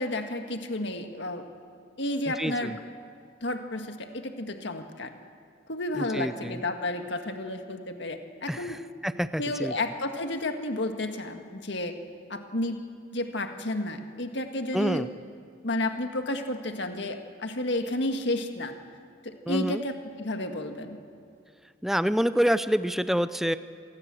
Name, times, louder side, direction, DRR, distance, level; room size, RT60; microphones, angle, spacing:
voice 1, 0.0-1.4 2.0-2.8 3.4-5.1 5.7-8.8 9.4-12.0 12.3-12.8 13.1-15.1 15.6-18.7 19.2-21.0, left 1 dB, 65° left, 6 dB, 1.8 m, -31 dB
voice 2, 2.4-2.8 5.9-6.6 8.5-9.7 14.7-15.1 19.5-19.8 21.8-23.6, equal, ahead, 13 dB, 0.5 m, -27 dB
26.5 x 19.5 x 7.7 m, 2.2 s
head